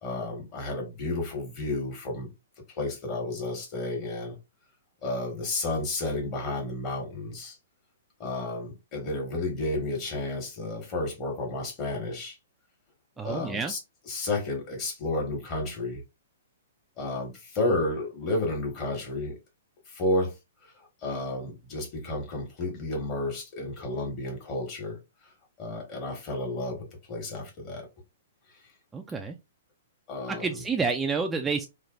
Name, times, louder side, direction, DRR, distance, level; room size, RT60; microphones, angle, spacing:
voice 1, 0.0-2.3 2.7-4.4 5.0-7.6 8.2-12.3 13.2-13.8 14.0-16.0 17.0-19.3 19.9-20.3 20.6-25.0 25.6-27.9 30.1-30.6, left 2 dB, 35° left, 1.5 m, -31 dB
voice 2, 13.2-13.7 28.9-29.4 30.3-31.7, right 4 dB, 10° right, 0.3 m, -29 dB
3.2 x 2.3 x 2.5 m
hypercardioid pair, 130°, 0 cm